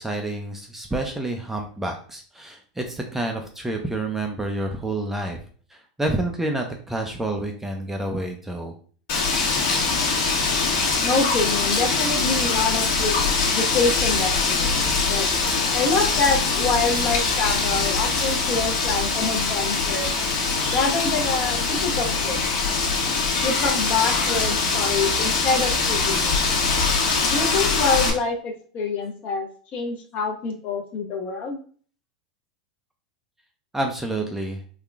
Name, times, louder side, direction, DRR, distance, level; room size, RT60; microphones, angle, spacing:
voice 1, 0.0-5.4 5.7-8.7 33.7-34.6, right 2 dB, 5° right, 3 dB, 0.5 m, -28 dB
Wind, 9.1-28.1, left 4 dB, 60° left, 1.3 m, -23 dB
voice 2, 11.0-13.2 13.5-15.3 15.7-20.1 20.7-22.4 23.4-26.5 27.3-29.5 29.7-31.6, left 4 dB, 40° left, 2 dB, 0.9 m, -26 dB
3.6 x 2.3 x 3.4 m, 0.44 s
supercardioid pair, 125°, 4 cm